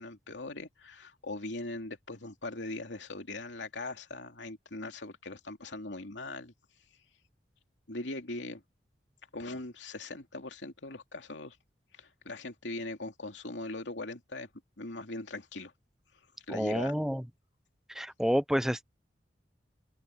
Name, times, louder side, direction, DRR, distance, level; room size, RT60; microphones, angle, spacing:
voice 1, 0.0-6.5 7.9-8.6 9.3-11.6 11.9-14.5 14.8-15.7 16.1-16.9, left 2 dB, 90° left, 2.7 m, -40 dB
voice 2, 16.5-17.2 17.9-18.8, equal, 5° right, 0.7 m, -29 dB
open air
head